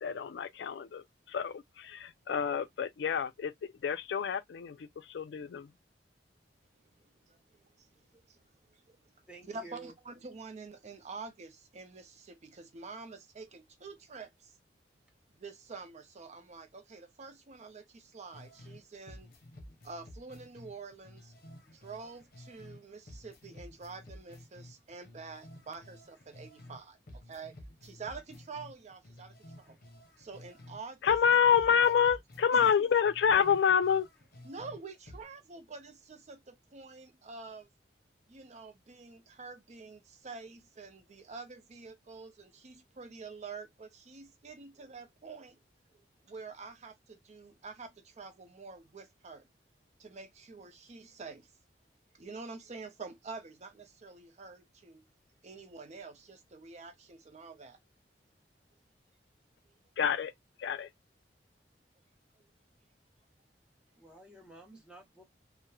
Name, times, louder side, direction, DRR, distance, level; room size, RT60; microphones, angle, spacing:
voice 1, 0.0-5.7 31.0-34.1 60.0-60.3 60.6-60.9, left 7 dB, 75° left, 0.4 m, -28 dB
voice 2, 7.3-7.9 8.1-9.0 9.5-14.5 15.4-19.3 19.8-21.3 21.7-29.8 30.2-31.1 32.5-32.6 34.4-37.7 38.3-45.6 46.3-49.4 50.0-51.5 52.1-55.0 55.4-57.8 59.7-59.8, right 4 dB, 40° right, 0.5 m, -47 dB
voice 3, 9.3-9.9 64.0-65.2, right 3 dB, 5° right, 0.9 m, -51 dB
sound 1, 18.3-18.8 19.1-22.8 23.1-26.8 27.1-30.8 31.1-34.8 35.1-35.2, left 1 dB, 55° left, 0.7 m, -52 dB
2.9 x 2.0 x 2.2 m
head